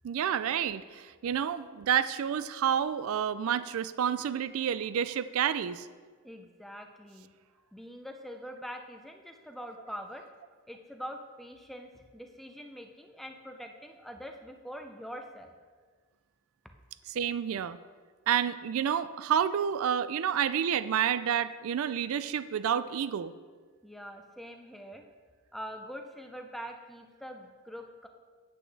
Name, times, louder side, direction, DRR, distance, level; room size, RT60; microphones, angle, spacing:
voice 1, 0.0-5.9 17.1-17.8 18.3-23.3, right 8 dB, 70° right, 14 dB, 0.3 m, -29 dB
voice 2, 6.2-7.3 7.7-10.2 10.7-15.5 23.8-25.0 25.5-28.1, equal, ahead, 4 dB, 0.5 m, -44 dB
8.5 x 8.3 x 3.4 m, 1.5 s
head